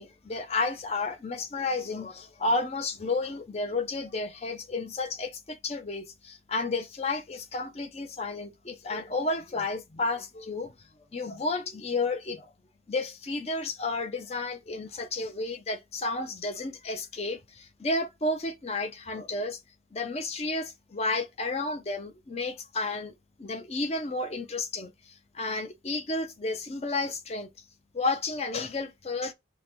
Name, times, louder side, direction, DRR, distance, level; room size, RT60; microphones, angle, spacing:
voice 1, 0.0-10.7 11.1-12.5 12.9-19.6 19.9-23.1 23.4-27.5 27.9-29.3, left 3 dB, 35° left, 0.5 m, -32 dB
3.8 x 2.2 x 4.3 m
head